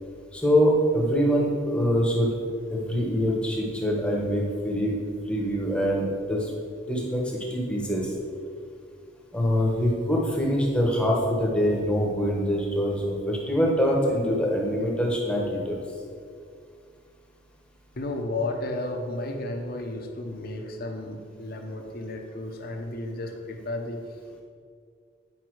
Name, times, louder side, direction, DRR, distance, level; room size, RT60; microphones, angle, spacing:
voice 1, 0.3-2.3 2.7-6.5 6.9-8.1 9.3-15.8, equal, 5° left, -3 dB, 1.2 m, -24 dB
voice 2, 18.0-24.0, left 2 dB, 50° left, 3 dB, 1.0 m, -33 dB
9.5 x 5.4 x 4.7 m, 2.2 s
head